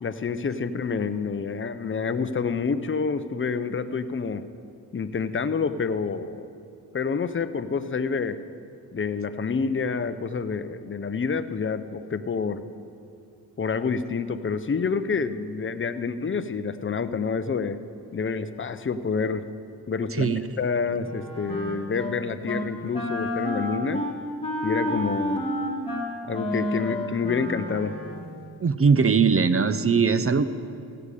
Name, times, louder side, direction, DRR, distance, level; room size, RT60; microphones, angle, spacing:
voice 1, 0.0-4.4 4.9-6.5 6.9-8.4 8.9-12.6 13.6-17.8 18.1-19.4 19.9-24.0 24.6-25.5 26.2-28.0, left 5 dB, 30° left, 12 dB, 0.6 m, -28 dB
voice 2, 20.1-20.4 28.6-30.4, right 5 dB, 35° right, 13 dB, 0.6 m, -20 dB
Wind instrument woodwind instrument, 21.0-22.1 22.4-22.7 22.9-28.2, left 1 dB, 15° left, 2.1 m, -30 dB
16.0 x 6.9 x 4.9 m, 2.5 s
cardioid pair, 40°, 42 cm